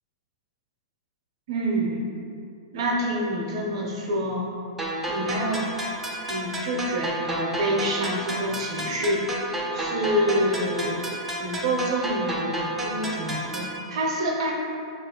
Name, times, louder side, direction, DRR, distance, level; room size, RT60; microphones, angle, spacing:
voice 1, 1.5-2.0 2.7-4.5 5.1-5.6 6.3-9.3 9.7-11.1 11.4-14.5, equal, 60° right, -2 dB, 0.5 m, -27 dB
sound 1, 4.8-13.8, right 1 dB, 5° right, 0.3 m, -31 dB
2.9 x 2.3 x 2.9 m, 2.5 s
hypercardioid pair, 125°, 3 cm